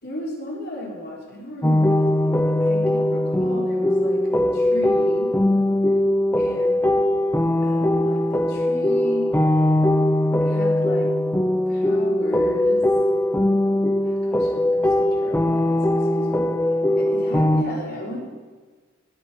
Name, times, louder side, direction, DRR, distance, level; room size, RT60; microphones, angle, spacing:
voice 1, 0.0-5.3 6.4-7.0 7.6-9.3 10.4-11.1 11.7-12.8 14.0-16.5 17.0-18.2, left 1 dB, 55° left, -3 dB, 4.1 m, -35 dB
sound 1, 1.6-17.6, left 1 dB, 10° left, 0.6 m, -20 dB
19.0 x 6.3 x 6.4 m, 1.4 s
head